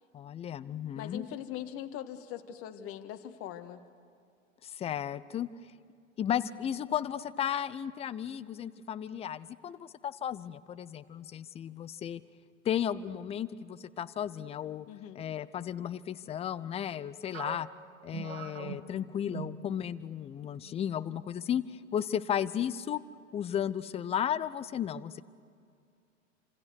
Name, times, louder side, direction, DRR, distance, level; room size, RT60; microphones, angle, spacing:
voice 1, 0.1-1.2 4.6-5.5 6.2-12.2 12.6-14.9 15.1-17.7 18.0-23.0 23.3-25.2, left 9 dB, 15° left, 16 dB, 0.6 m, -34 dB
voice 2, 0.9-3.8 14.9-15.2, left 11 dB, 35° left, 8 dB, 1.7 m, -41 dB
sound 1, 17.3-20.2 20.5-20.7 21.4-21.8, right 6 dB, 60° right, 2.3 m, -43 dB
28.5 x 26.5 x 6.5 m, 2.3 s
figure-of-eight pair, 95°, 39 cm